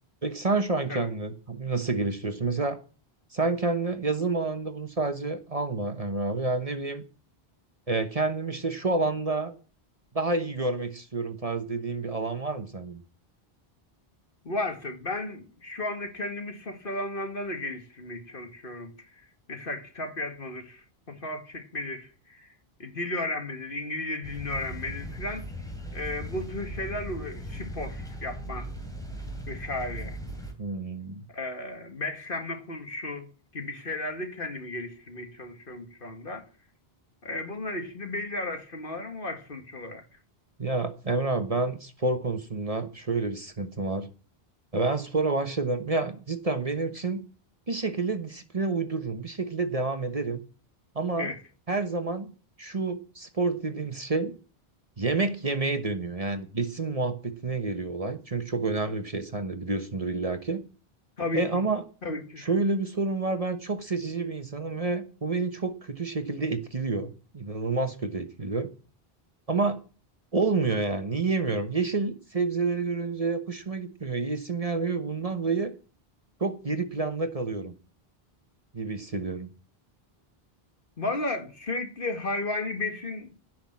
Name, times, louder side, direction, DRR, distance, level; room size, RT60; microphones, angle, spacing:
voice 1, 0.2-2.8 3.3-7.0 7.9-9.5 10.1-13.0 30.6-31.2 40.6-44.1 44.7-47.2 47.7-50.4 50.9-51.3 51.7-52.3 52.6-54.3 55.0-60.6 61.3-61.8 62.4-68.7 69.5-69.8 70.3-75.7 76.4-77.7 78.7-79.5, right 3 dB, 35° right, 1.2 m, -29 dB
voice 2, 14.4-18.9 19.5-22.5 22.8-25.5 25.9-28.7 29.5-30.2 31.3-33.3 33.5-36.5 37.2-40.0 51.2-51.4 61.2-61.5 62.0-62.5 81.0-83.3, left 2 dB, 60° left, 2.1 m, -34 dB
sound 1, 24.2-30.5, right 1 dB, 5° left, 3.1 m, -38 dB
16.0 x 6.1 x 7.4 m
omnidirectional pair, 1.0 m